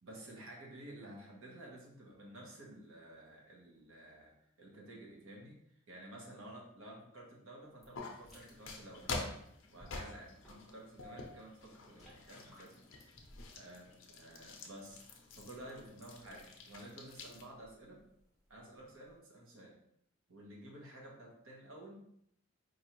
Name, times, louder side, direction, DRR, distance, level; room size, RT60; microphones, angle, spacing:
voice 1, 0.0-9.4 9.7-12.7 13.5-18.0 18.5-19.8 20.3-22.0, right 1 dB, 75° right, -2 dB, 1.1 m, -52 dB
sound 1, 7.6-19.2, equal, ahead, 0.8 m, -65 dB
sound 2, 7.9-17.5, left 3 dB, 60° left, 0.6 m, -47 dB
4.7 x 2.6 x 2.9 m, 0.72 s
head